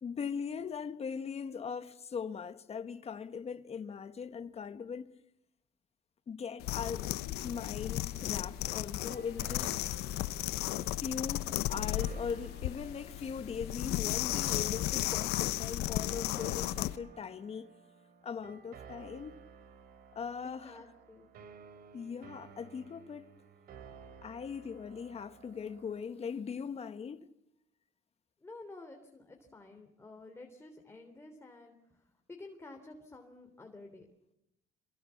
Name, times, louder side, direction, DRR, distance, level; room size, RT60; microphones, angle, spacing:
voice 1, 0.0-5.1 6.3-7.1 7.4-9.8 10.8-17.7 18.2-19.3 20.1-20.8 21.9-23.3 24.2-27.3, left 6 dB, 40° left, 1.5 m, -40 dB
sound 1, 6.6-17.0, left 15 dB, 85° left, 0.8 m, -34 dB
sound 2, 8.1-26.1, right 6 dB, 65° right, 4.0 m, -55 dB
voice 2, 20.4-21.3 28.4-32.0 32.3-34.1, left 2 dB, 15° left, 3.5 m, -51 dB
27.0 x 22.0 x 7.2 m
cardioid pair, 95°, 16 cm